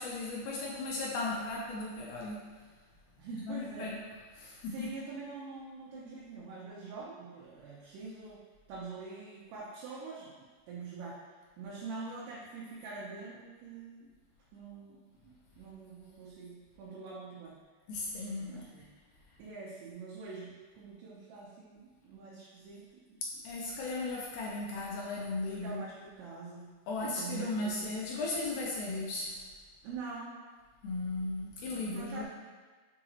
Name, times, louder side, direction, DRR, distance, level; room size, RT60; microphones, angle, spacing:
voice 1, 0.0-2.4 3.3-4.0 4.4-4.9 17.9-18.6 23.4-25.8 26.9-29.4 30.8-32.2, left 2 dB, 80° left, -4 dB, 1.8 m, -36 dB
voice 2, 3.2-4.0 4.7-11.2 11.6-14.1 14.5-17.6 18.5-18.9 19.4-23.2 25.6-26.7 27.0-27.9 29.8-30.4 31.9-32.2, right 4 dB, 90° right, -7 dB, 2.3 m, -45 dB
6.2 x 2.8 x 2.8 m, 1.4 s
omnidirectional pair, 3.6 m